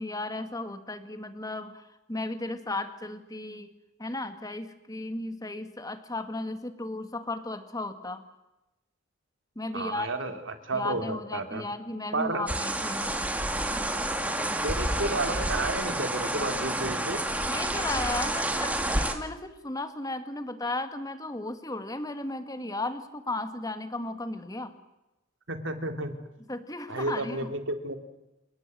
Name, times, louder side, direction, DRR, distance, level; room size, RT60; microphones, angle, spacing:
voice 1, 0.0-3.7 4.0-8.2 9.6-10.1 10.7-13.2 14.4-14.7 17.5-24.7 26.5-27.5, left 2 dB, 20° left, 9 dB, 2.1 m, -35 dB
voice 2, 9.7-10.3 10.6-11.6 12.1-12.5 14.6-17.2 25.5-26.1 26.9-28.0, right 2 dB, 65° right, 7 dB, 3.0 m, -31 dB
sound 1, 12.5-19.1, right 1 dB, 5° right, 2.3 m, -29 dB
29.5 x 19.0 x 7.8 m, 0.96 s
head